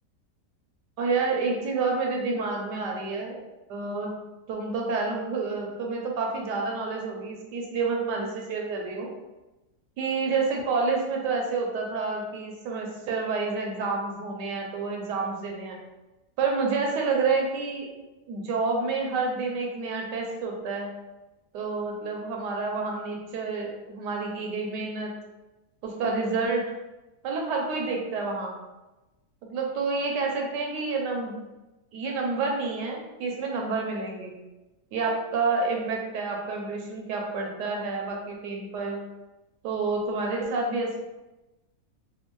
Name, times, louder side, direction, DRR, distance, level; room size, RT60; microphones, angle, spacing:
voice 1, 1.0-3.4 3.7-4.1 4.5-9.1 10.0-15.8 16.4-17.9 18.3-20.9 21.5-25.1 25.8-26.7 27.2-28.5 29.4-31.3 31.9-34.4 34.9-39.0 39.6-41.0, right 4 dB, 85° right, 0 dB, 1.3 m, -29 dB
3.5 x 2.2 x 2.9 m, 1.1 s
omnidirectional pair, 1.8 m